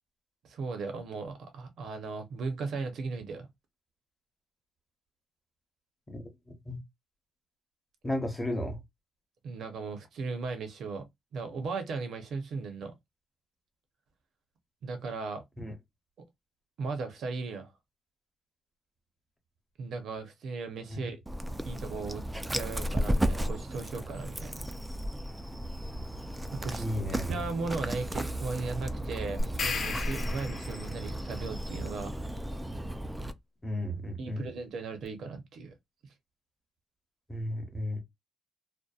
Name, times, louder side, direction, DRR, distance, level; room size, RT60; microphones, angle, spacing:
voice 1, 0.5-3.5 9.4-11.1 11.3-12.9 14.8-15.4 16.8-17.7 19.8-21.2 21.6-22.2 22.5-24.7 26.5-26.8 27.2-32.1 34.2-35.7, right 4 dB, 65° right, 0.6 m, -37 dB
voice 2, 8.0-8.8 15.6-15.7 20.9-21.0 26.7-27.4 33.6-34.5 37.3-38.0, left 1 dB, 15° left, 0.7 m, -33 dB
Dog, 21.3-33.3, equal, 10° right, 0.3 m, -34 dB
sound 1, 29.4-31.0, left 4 dB, 45° left, 0.9 m, -34 dB
2.6 x 2.0 x 2.3 m
cardioid pair, 130°, 0 cm